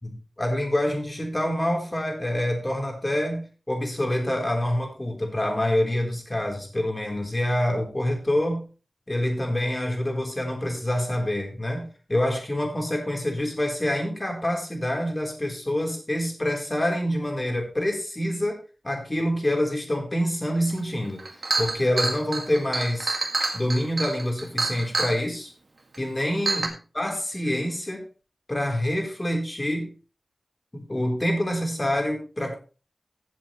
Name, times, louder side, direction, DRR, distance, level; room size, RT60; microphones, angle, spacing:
voice 1, 0.0-8.6 9.1-18.6 18.8-21.2 21.6-23.2 23.5-25.5 26.0-28.0 28.5-29.9 30.7-32.6, left 1 dB, 25° left, 2 dB, 3.9 m, -26 dB
Chink clink, 20.8-20.9 21.2-25.2 25.9-26.0 26.5-26.7, right 3 dB, 60° right, 2.0 m, -27 dB
16.0 x 7.6 x 3.2 m, 0.35 s
wide cardioid pair, 70°, 0 cm